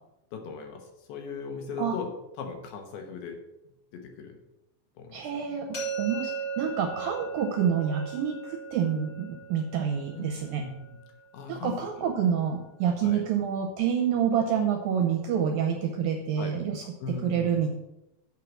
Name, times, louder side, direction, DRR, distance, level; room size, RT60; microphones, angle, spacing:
voice 1, 0.3-2.1 2.4-3.4 3.9-4.4 5.0-5.3 10.1-11.0 11.3-12.1 13.0-13.2 16.4-16.6 17.0-17.6, left 5 dB, 70° left, 3 dB, 2.9 m, -38 dB
voice 2, 5.1-10.6 11.5-17.7, right 8 dB, 75° right, 3 dB, 2.1 m, -28 dB
sound 1, 5.7-11.6, right 5 dB, 25° left, 3.5 m, -38 dB
8.4 x 4.6 x 7.3 m, 0.90 s
omnidirectional pair, 4.9 m